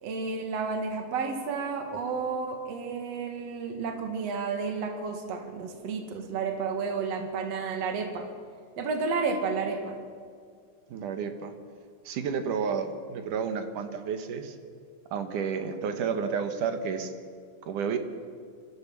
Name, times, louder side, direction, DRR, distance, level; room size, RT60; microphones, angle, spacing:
voice 1, 0.0-8.2 8.8-10.0, right 4 dB, 50° right, 5 dB, 2.8 m, -31 dB
voice 2, 10.9-11.5 12.1-14.6 15.1-17.1 17.7-18.0, right 6 dB, 65° right, 8 dB, 2.6 m, -31 dB
25.5 x 14.0 x 7.3 m, 2.1 s
omnidirectional pair, 4.2 m